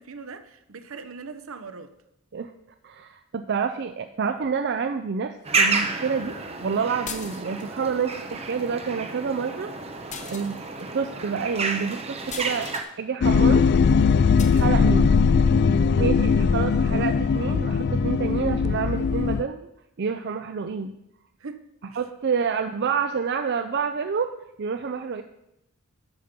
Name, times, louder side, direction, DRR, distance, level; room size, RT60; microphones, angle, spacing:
voice 1, 0.0-1.9 13.9-14.2 21.4-21.6 21.9-22.0, right 4 dB, 70° right, 0.8 m, -40 dB
voice 2, 2.8-9.7 10.2-10.6 10.9-13.6 14.5-15.2 15.8-19.7 20.0-21.0 22.0-24.3 24.6-25.2, right 6 dB, 55° right, 0.4 m, -28 dB
sound 1, 5.4-12.8, right 4 dB, 30° right, 0.9 m, -30 dB
sound 2, 7.1-7.8 10.1-10.9 12.3-12.9 14.4-14.7, left 7 dB, 35° left, 0.8 m, -39 dB
sound 3, 13.2-19.4, left 5 dB, 50° left, 0.3 m, -20 dB
12.0 x 5.8 x 5.2 m
head